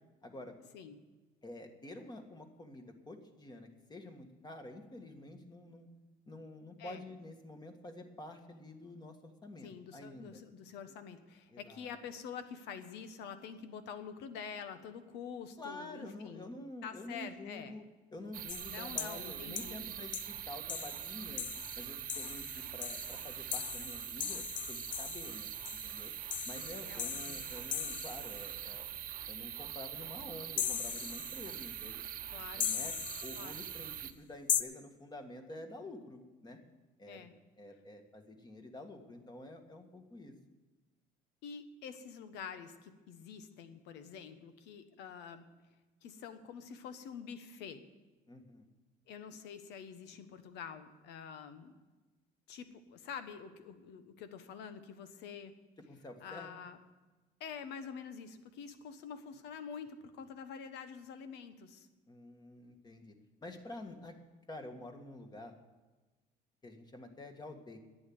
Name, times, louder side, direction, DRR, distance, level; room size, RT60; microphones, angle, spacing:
voice 1, 0.2-0.6 1.4-5.9 6.3-10.4 11.5-12.0 15.6-17.8 18.1-20.2 20.5-21.5 21.8-25.5 25.8-26.1 26.4-28.9 29.3-32.0 32.6-33.0 33.2-36.6 37.0-37.3 37.6-40.3 48.3-48.7 55.9-56.5 62.1-63.2 63.4-64.2 64.5-65.5 66.6-67.8, left 2 dB, 25° left, 5 dB, 1.8 m, -48 dB
voice 2, 9.6-17.8 18.7-19.8 26.9-27.4 32.3-32.7 33.4-33.7 37.1-37.3 41.4-45.5 46.0-47.8 49.1-51.7 52.5-55.5 56.2-56.8 57.4-61.9, left 7 dB, 85° left, 10 dB, 1.2 m, -47 dB
sound 1, 18.3-34.1, right 10 dB, 55° right, 0.9 m, -43 dB
sound 2, 18.5-19.2 19.5-19.7 20.1-20.3 20.7-28.5 30.6-31.6 32.6-33.6 34.5-34.6, left 9 dB, 50° left, 0.7 m, -39 dB
11.0 x 8.7 x 9.4 m, 1.2 s
cardioid pair, 110°, 17 cm